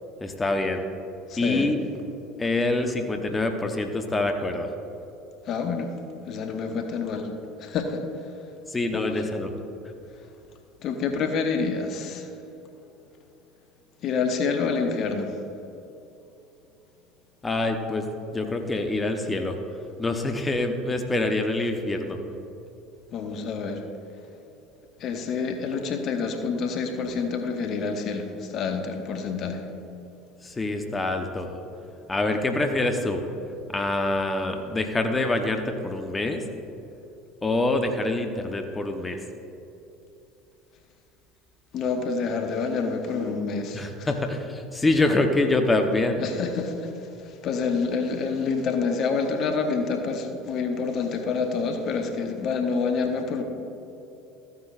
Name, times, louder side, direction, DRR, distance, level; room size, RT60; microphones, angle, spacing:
voice 1, 0.2-0.8 1.4-1.8 2.4-4.7 8.7-9.6 17.4-18.1 18.3-19.6 20.0-22.2 30.4-31.6 32.1-33.2 33.7-36.4 37.4-39.2 43.7-46.2, left 2 dB, 20° left, 5 dB, 0.9 m, -25 dB
voice 2, 1.3-1.7 5.5-5.9 6.3-7.3 7.6-8.0 8.9-9.3 10.8-12.3 14.0-15.4 23.1-23.8 25.0-29.6 41.7-44.1 46.2-46.7 47.4-53.4, left 5 dB, 50° left, 5 dB, 1.0 m, -27 dB
14.0 x 9.5 x 2.5 m, 2.9 s
hypercardioid pair, 70°, 0 cm